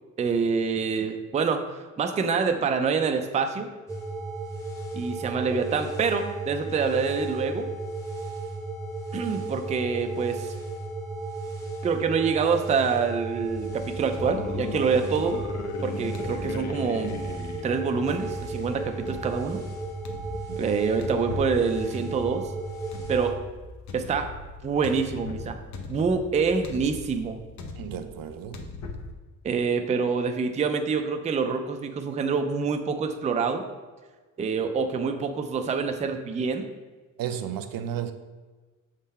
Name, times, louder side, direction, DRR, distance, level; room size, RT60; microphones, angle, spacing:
voice 1, 0.2-3.7 4.9-7.7 9.1-10.5 11.8-15.4 15.8-17.2 17.6-19.6 20.6-22.4 23.1-23.4 23.9-24.3 24.6-25.6 25.9-27.4 29.4-33.6 34.4-36.7, right 5 dB, 20° right, 6 dB, 0.3 m, -26 dB
sound 1, 3.9-23.3, right 3 dB, 10° left, 0.8 m, -35 dB
sound 2, 13.4-29.1, left 4 dB, 60° left, 0.7 m, -38 dB
voice 2, 27.8-28.6 37.2-38.1, right 9 dB, 85° right, 8 dB, 0.5 m, -33 dB
6.4 x 3.8 x 4.1 m, 1.3 s
wide cardioid pair, 165°, 33 cm